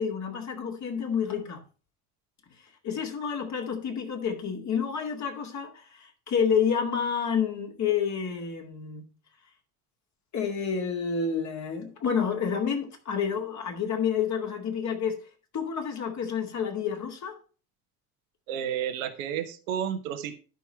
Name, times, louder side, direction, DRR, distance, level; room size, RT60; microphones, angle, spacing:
voice 1, 0.0-1.6 2.8-9.0 10.3-15.2 15.5-17.4, left 7 dB, 40° left, 2.3 m, -29 dB
voice 2, 18.5-20.3, right 9 dB, 65° right, 1.2 m, -31 dB
11.0 x 5.8 x 4.4 m
figure-of-eight pair, 60°, 44 cm